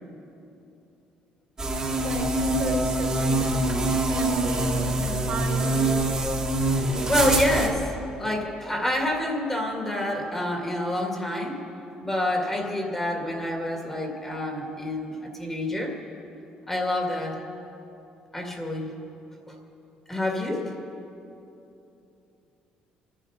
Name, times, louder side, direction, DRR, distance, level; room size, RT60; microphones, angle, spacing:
sound 1, 1.6-7.7, right 2 dB, 25° right, 1.9 m, -24 dB
voice 1, 2.0-6.0, right 1 dB, 60° right, 0 dB, 2.8 m, -35 dB
voice 2, 6.8-11.6 12.0-15.9 16.7-17.4 18.3-18.9 20.1-20.7, left 1 dB, 15° left, 0 dB, 2.3 m, -28 dB
24.5 x 10.5 x 5.0 m, 2.9 s
cardioid pair, 110°, 3 cm